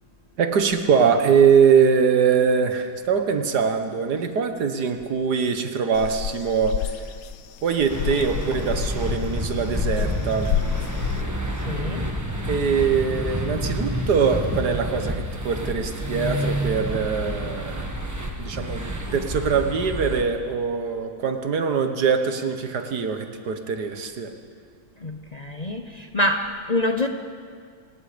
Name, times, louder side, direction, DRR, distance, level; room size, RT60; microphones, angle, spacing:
voice 1, 0.4-7.0 7.6-10.5 12.5-17.9 18.4-18.8 19.1-24.3, right 6 dB, 80° right, 7 dB, 1.9 m, -22 dB
sound 1, 5.9-11.2, left 9 dB, 90° left, 1.4 m, -29 dB
sound 2, 7.9-20.2, right 1 dB, 10° right, 1.3 m, -29 dB
voice 2, 11.7-12.1 25.0-27.1, left 1 dB, 30° left, 5 dB, 0.8 m, -26 dB
27.0 x 19.0 x 5.2 m, 2.1 s
omnidirectional pair, 1.7 m